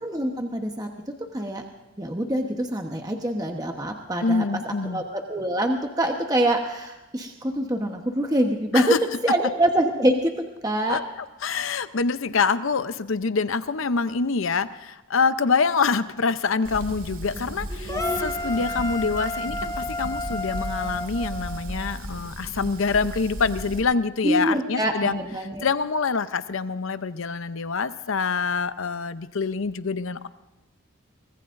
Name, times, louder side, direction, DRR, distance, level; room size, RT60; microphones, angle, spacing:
voice 1, 0.0-0.9 1.3-1.6 2.0-8.9 9.2-10.3 10.6-11.0 17.7-18.3 24.2-25.7, right 1 dB, 20° right, 3 dB, 1.1 m, -25 dB
voice 2, 4.2-5.0 8.7-9.0 10.9-11.0 11.4-25.2 25.6-30.3, left 4 dB, 75° left, 12 dB, 0.7 m, -25 dB
Fire, 16.6-23.8, right 1 dB, 75° right, 2.1 m, -36 dB
sound 1, 17.9-22.0, left 2 dB, 15° left, 0.6 m, -32 dB
24.5 x 19.0 x 2.6 m, 1.1 s
head